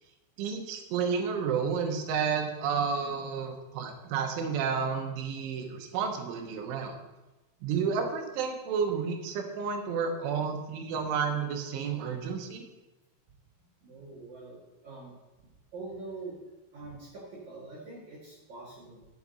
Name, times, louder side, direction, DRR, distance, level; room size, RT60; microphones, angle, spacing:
voice 1, 0.4-7.0 7.6-12.6, right 6 dB, 75° right, 4 dB, 3.4 m, -31 dB
voice 2, 13.8-14.6 14.8-15.2 15.7-16.4 16.7-19.1, right 3 dB, 55° right, -6 dB, 2.3 m, -44 dB
12.0 x 8.2 x 4.1 m, 1.1 s
omnidirectional pair, 5.8 m